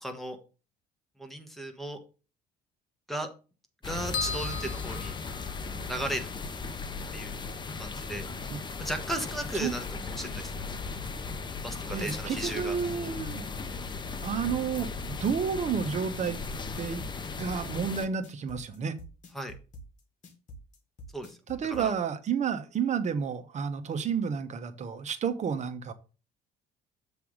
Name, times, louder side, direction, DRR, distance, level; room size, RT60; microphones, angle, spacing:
voice 1, 0.0-0.4 1.2-2.0 3.1-3.3 3.8-5.1 5.9-6.3 7.1-7.4 7.8-8.3 8.8-10.8 11.6-12.8 19.3-19.5 21.1-21.4 21.6-21.9, right 1 dB, ahead, 1.4 m, -36 dB
sound 1, 3.8-18.1, left 4 dB, 25° left, 0.8 m, -37 dB
sound 2, 4.1-5.9, left 5 dB, 65° left, 1.2 m, -36 dB
voice 2, 11.9-13.4 14.2-16.4 16.8-17.0 17.4-19.0 21.5-25.9, right 7 dB, 45° right, 1.0 m, -31 dB
sound 3, 14.2-21.9, right 1 dB, 45° left, 1.8 m, -47 dB
7.1 x 3.4 x 6.2 m
cardioid pair, 110°, 17 cm